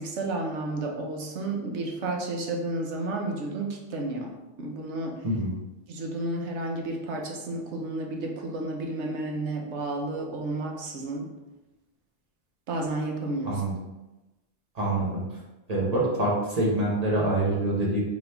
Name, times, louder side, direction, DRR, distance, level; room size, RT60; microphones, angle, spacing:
voice 1, 0.0-4.3 4.6-5.2 5.9-11.3 12.7-13.6, right 2 dB, 85° right, 1 dB, 1.0 m, -31 dB
voice 2, 14.8-15.2 15.7-18.0, right 1 dB, 35° right, -5 dB, 1.1 m, -25 dB
4.2 x 2.8 x 3.3 m, 1.0 s
omnidirectional pair, 1.2 m